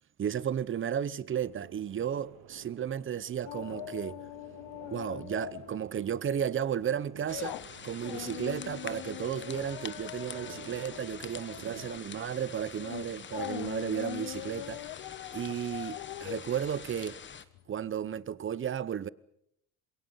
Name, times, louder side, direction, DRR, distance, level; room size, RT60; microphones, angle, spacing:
voice 1, 0.2-4.2 4.9-14.9 15.3-17.2 17.7-19.1, right 9 dB, 35° right, 0.8 m, -34 dB
sound 1, 1.3-16.3, right 14 dB, 80° right, 1.1 m, -53 dB
sound 2, 3.5-5.9 6.2-6.4 6.8-17.8 18.1-18.2, left 18 dB, 80° left, 0.8 m, -42 dB
sound 3, 7.3-17.5, left 6 dB, 30° left, 1.2 m, -46 dB
27.0 x 22.0 x 5.7 m
cardioid pair, 105°, 37 cm